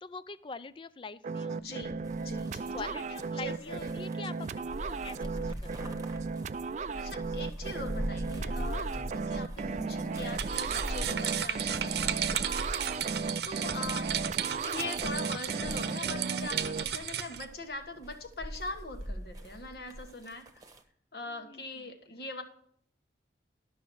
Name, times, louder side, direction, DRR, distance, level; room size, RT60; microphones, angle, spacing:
voice 1, 0.0-1.9 2.7-6.1 10.1-10.2 21.3-21.9, left 4 dB, 30° left, 15 dB, 0.4 m, -45 dB
sound 1, 1.2-16.8, right 4 dB, 40° right, 0.4 m, -35 dB
voice 2, 1.5-1.9 2.2-2.7 3.4-3.9 6.9-12.4 13.4-14.1 14.7-20.5 21.1-22.4, left 2 dB, 60° left, 6 dB, 1.6 m, -42 dB
sound 2, 2.0-20.8, equal, 20° right, 1.2 m, -42 dB
sound 3, 10.3-17.4, right 9 dB, 65° right, 0.8 m, -34 dB
12.5 x 6.2 x 6.2 m, 0.63 s
head